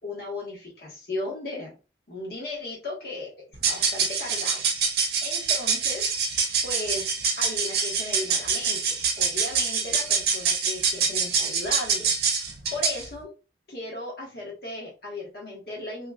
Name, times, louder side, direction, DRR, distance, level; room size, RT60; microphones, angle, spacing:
voice 1, 0.0-1.7 2.1-3.3 3.7-6.2 6.6-12.4 12.7-13.3 13.7-16.1, left 2 dB, 55° left, -4 dB, 1.4 m, -36 dB
sound 1, 3.5-13.1, right 5 dB, 55° right, 0.7 m, -25 dB
3.1 x 3.0 x 2.3 m, 0.31 s
head